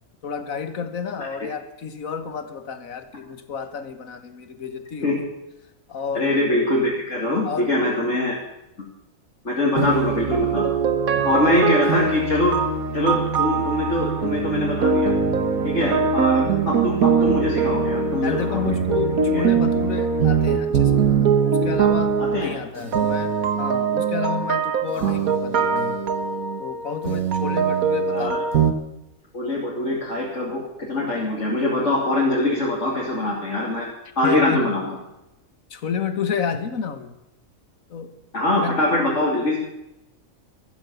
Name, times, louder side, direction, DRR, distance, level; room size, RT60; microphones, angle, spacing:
voice 1, 0.2-5.2 5.9-6.3 7.4-7.7 9.8-10.0 11.2-11.8 15.8-16.1 18.2-26.0 26.6-28.6 34.2-34.7 35.7-37.2 37.9-38.1 38.6-38.8, left 6 dB, 70° left, 10 dB, 1.8 m, -31 dB
voice 2, 6.1-8.4 9.4-10.6 11.2-12.5 12.9-15.1 15.6-18.6 19.3-19.4 22.2-22.6 25.0-25.1 28.1-28.4 29.3-33.9 34.2-34.9 38.3-39.6, left 1 dB, 55° left, -5 dB, 3.3 m, -23 dB
sound 1, 9.8-28.7, right 6 dB, 80° right, 1.6 m, -22 dB
13.5 x 13.5 x 7.1 m, 0.90 s
omnidirectional pair, 1.5 m